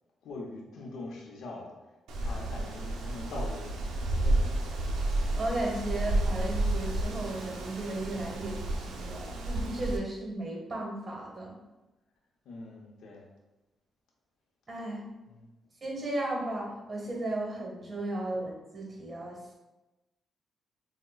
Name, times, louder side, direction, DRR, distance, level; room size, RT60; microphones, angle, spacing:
voice 1, 0.2-1.7 2.2-3.8 4.1-4.7 12.5-13.3, left 2 dB, 80° left, -1 dB, 0.6 m, -42 dB
Wind, 2.1-10.0, right 1 dB, 85° right, 0.4 m, -31 dB
voice 2, 5.1-11.6 14.7-15.1 15.8-19.5, right 2 dB, 35° right, -2 dB, 1.1 m, -35 dB
4.8 x 2.1 x 2.3 m, 1.1 s
cardioid pair, 80°, 0 cm